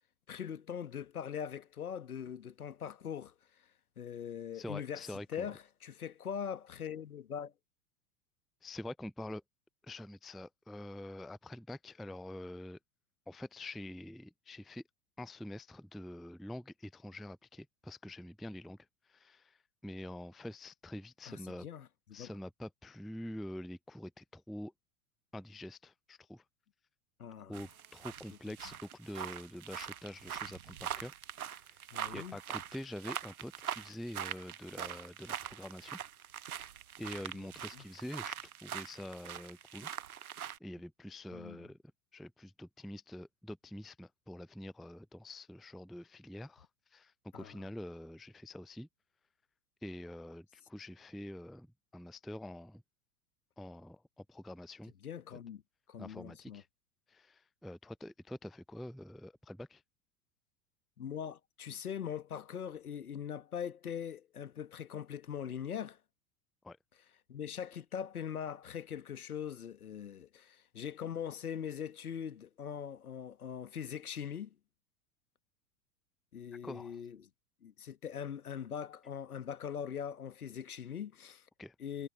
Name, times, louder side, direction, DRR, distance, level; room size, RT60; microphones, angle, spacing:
voice 1, 0.3-3.3 4.0-5.0 5.3-7.5 21.3-22.3 27.2-27.6 31.9-32.4 37.3-37.5 37.7-37.8 41.3-41.7 47.3-47.5 55.0-55.6 55.9-56.6 61.0-66.0 67.3-74.5 76.3-77.2 77.6-81.4 81.8-82.1, left 8 dB, 70° left, 1.4 m, -41 dB
voice 2, 4.5-5.5 8.6-9.4 9.8-12.8 13.3-14.8 15.2-18.8 19.0-21.7 22.1-24.7 25.3-26.4 27.5-31.1 31.4-36.0 36.5-36.6 37.0-38.4 38.6-39.9 40.6-41.8 42.1-48.9 49.8-52.8 53.6-54.9 56.0-56.7 57.1-59.8 66.6-66.8 76.6-77.0 81.6-81.8, left 1 dB, ahead, 0.4 m, -46 dB
sound 1, 27.5-40.6, right 9 dB, 65° right, 1.3 m, -43 dB
figure-of-eight pair, 90°, 46 cm